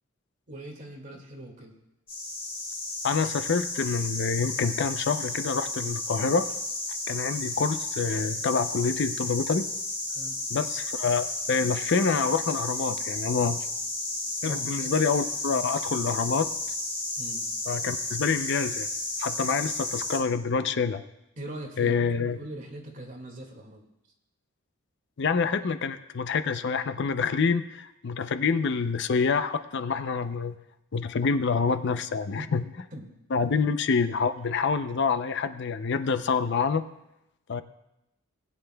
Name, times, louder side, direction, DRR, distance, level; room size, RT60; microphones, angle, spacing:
voice 1, 0.5-1.7 10.1-10.4 14.5-15.0 17.2-17.4 21.4-23.8 32.4-32.5 32.9-33.1, right 1 dB, 40° right, 1 dB, 2.0 m, -41 dB
sound 1, 2.1-20.2, left 2 dB, 25° left, 2.5 m, -33 dB
voice 2, 3.0-6.5 7.1-9.7 10.5-13.7 14.4-16.5 17.7-18.9 19.2-21.0 21.8-22.4 25.2-30.6 30.9-32.6 33.3-36.8 37.5-37.6, left 5 dB, 55° left, 10 dB, 0.5 m, -27 dB
19.5 x 9.4 x 2.2 m, 0.87 s
head